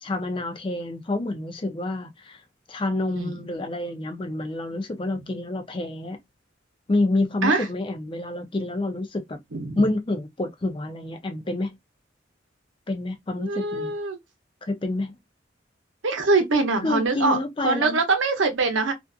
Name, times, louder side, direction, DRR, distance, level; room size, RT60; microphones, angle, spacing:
voice 1, 0.0-2.4 2.7-6.2 6.9-9.4 9.8-11.8 12.9-13.9 14.6-15.1 16.8-18.0, left 2 dB, 25° left, 0.4 m, -28 dB
voice 2, 9.5-9.9 13.4-14.2 16.0-18.9, right 3 dB, 80° right, 0.7 m, -23 dB
2.5 x 2.5 x 2.3 m
head